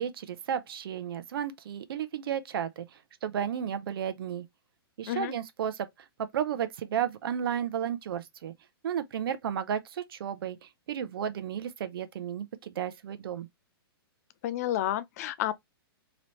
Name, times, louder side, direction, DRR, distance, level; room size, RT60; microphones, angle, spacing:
voice 1, 0.0-2.9 3.2-4.4 5.0-5.9 6.3-8.5 8.8-13.5, right 9 dB, 65° right, 0.7 m, -33 dB
voice 2, 14.4-15.5, left 13 dB, 40° left, 0.4 m, -30 dB
3.2 x 3.0 x 4.0 m
hypercardioid pair, 155°, 13 cm